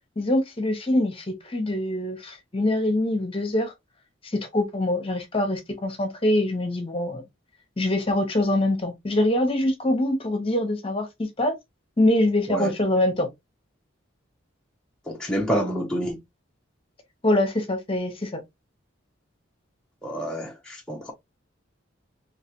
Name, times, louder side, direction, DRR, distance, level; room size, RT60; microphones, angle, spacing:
voice 1, 0.2-3.7 4.2-7.2 7.8-11.5 12.0-13.3 17.2-18.4, left 1 dB, 25° left, 0.9 m, -24 dB
voice 2, 15.1-16.2 20.0-21.1, equal, 5° left, 0.7 m, -28 dB
3.5 x 3.2 x 2.8 m
head